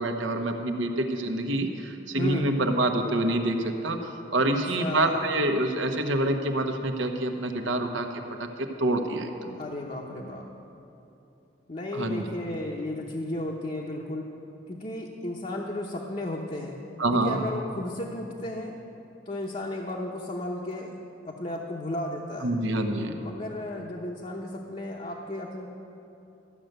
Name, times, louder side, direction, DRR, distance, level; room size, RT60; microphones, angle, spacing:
voice 1, 0.0-3.6 3.8-8.1 8.6-9.5 11.9-12.2 17.0-17.4 22.4-23.2, right 1 dB, 80° right, 5 dB, 1.1 m, -26 dB
voice 2, 2.2-2.5 4.4-4.5 4.8-5.2 9.5-10.5 11.7-14.3 14.7-16.8 17.1-18.7 19.3-20.9 21.2-22.5 23.2-25.7, left 1 dB, 35° left, -2 dB, 0.9 m, -34 dB
13.5 x 6.7 x 9.0 m, 2.8 s
head